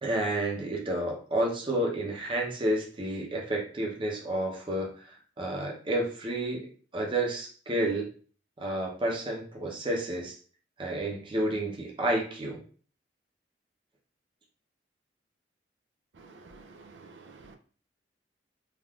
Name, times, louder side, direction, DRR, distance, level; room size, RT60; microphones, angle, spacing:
voice 1, 0.0-6.7 6.9-8.1 8.6-10.4 10.8-12.6, right 1 dB, 30° right, -1 dB, 0.6 m, -30 dB
voice 2, 16.1-17.6, right 4 dB, 80° right, 4 dB, 0.4 m, -51 dB
3.4 x 2.4 x 2.3 m, 0.42 s
head